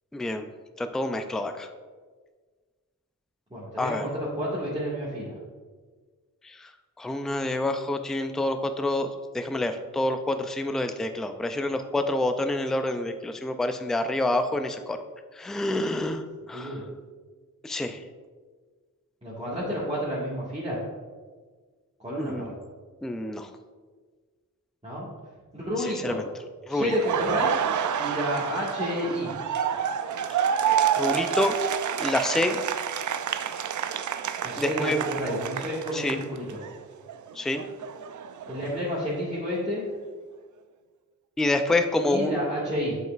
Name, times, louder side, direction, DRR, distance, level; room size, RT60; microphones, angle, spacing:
voice 1, 0.1-0.5 0.8-1.7 3.8-4.1 6.4-6.7 7.0-9.1 9.3-15.0 15.4-16.8 17.6-18.0 22.2-22.5 23.0-23.5 25.8-26.2 26.7-26.9 30.9-31.6 32.0-32.6 34.6-35.1 35.9-36.2 37.4-37.6 41.4-42.4, left 2 dB, ahead, 8 dB, 0.3 m, -27 dB
voice 2, 3.5-5.3 16.5-16.8 19.2-20.8 22.0-22.5 24.8-25.1 25.5-26.2 26.7-27.5 28.0-29.3 34.4-36.4 38.5-39.8 42.0-43.0, equal, 20° right, -9 dB, 1.7 m, -30 dB
Laughter, 26.9-36.7 37.1-39.1, right 8 dB, 60° right, 0.4 m, -29 dB
7.5 x 5.4 x 2.5 m, 1.5 s
cardioid pair, 70°, 34 cm